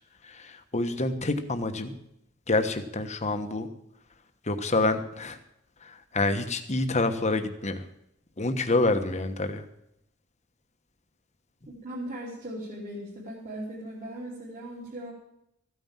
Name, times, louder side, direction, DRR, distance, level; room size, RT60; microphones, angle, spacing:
voice 1, 0.2-2.0 2.5-3.7 4.4-5.4 5.8-7.8 8.4-9.6, left 2 dB, 30° left, 8 dB, 1.2 m, -27 dB
voice 2, 11.7-15.1, right 1 dB, 35° right, -6 dB, 3.3 m, -38 dB
15.0 x 9.3 x 7.4 m, 0.79 s
head